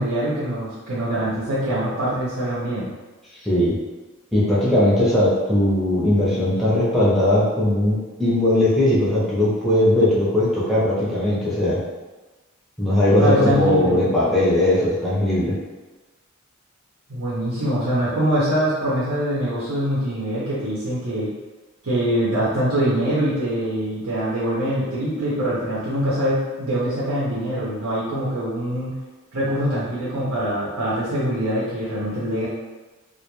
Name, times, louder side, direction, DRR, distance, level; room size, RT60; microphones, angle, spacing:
voice 1, 0.0-2.9 13.2-14.0 17.1-21.3 21.8-28.9 29.3-32.5, right 1 dB, 85° right, -9 dB, 0.7 m, -23 dB
voice 2, 3.4-3.8 4.3-11.8 12.8-15.6, left 1 dB, ahead, -9 dB, 0.5 m, -19 dB
2.2 x 2.1 x 3.0 m, 1.2 s
head